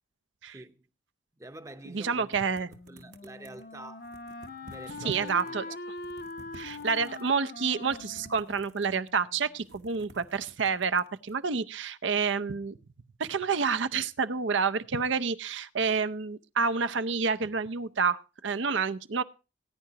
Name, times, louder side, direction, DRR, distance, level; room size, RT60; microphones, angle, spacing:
voice 1, 0.5-0.9 1.3-4.1 4.7-5.8, right 1 dB, 15° right, 0.7 m, -47 dB
voice 2, 1.9-2.7 5.0-5.6 6.5-12.8 13.2-19.2, right 5 dB, 70° right, 0.6 m, -29 dB
sound 1, 2.3-3.7 4.0-5.5 5.9-7.3 7.8-9.2 9.5-11.3, right 2 dB, 55° right, 1.0 m, -53 dB
Wind instrument woodwind instrument, 2.6-9.5, left 3 dB, 50° left, 0.7 m, -43 dB
19.0 x 10.0 x 2.8 m
head